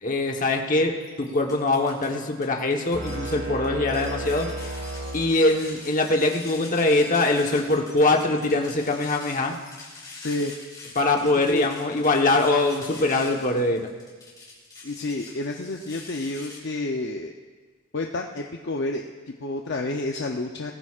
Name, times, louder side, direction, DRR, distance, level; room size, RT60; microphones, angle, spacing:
voice 1, 0.0-4.5 5.1-9.6 10.9-13.9, left 2 dB, 40° left, 2 dB, 1.1 m, -23 dB
sound 1, 1.0-2.1 2.4-16.6, left 3 dB, 20° left, 3.7 m, -44 dB
sound 2, 2.9-5.9, right 1 dB, 45° right, 2.0 m, -33 dB
voice 2, 10.2-10.5 11.5-11.7 14.8-17.3 17.9-20.7, left 2 dB, 55° left, 2 dB, 0.6 m, -30 dB
20.0 x 14.5 x 2.4 m, 1.4 s
head